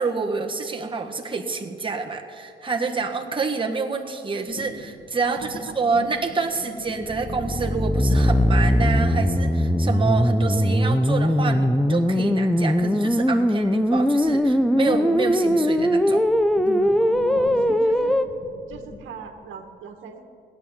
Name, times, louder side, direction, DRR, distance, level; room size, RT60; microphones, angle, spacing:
voice 1, 0.0-16.2 16.6-17.0, right 4 dB, 25° right, 2 dB, 1.5 m, -28 dB
sound 1, 4.5-19.3, left 2 dB, 40° left, 3.4 m, -42 dB
sound 2, 7.0-18.2, equal, ahead, 0.6 m, -20 dB
voice 2, 17.0-18.3 18.7-20.2, right 6 dB, 80° right, 5 dB, 1.4 m, -39 dB
17.0 x 10.5 x 7.2 m, 2.4 s
cardioid pair, 90°, 20 cm